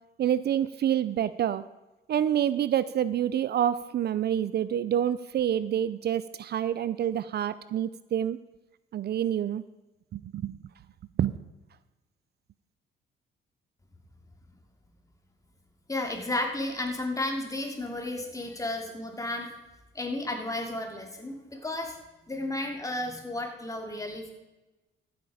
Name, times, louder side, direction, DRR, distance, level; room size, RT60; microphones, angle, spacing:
voice 1, 0.2-1.7 2.1-8.4 8.9-9.6 10.1-10.6 11.2-11.3, right 10 dB, 55° right, 16 dB, 0.5 m, -27 dB
voice 2, 15.9-19.5 19.9-22.0 22.3-24.3, left 2 dB, 15° left, 2 dB, 2.7 m, -33 dB
14.0 x 8.1 x 5.0 m, 1.1 s
cardioid pair, 90°, 20 cm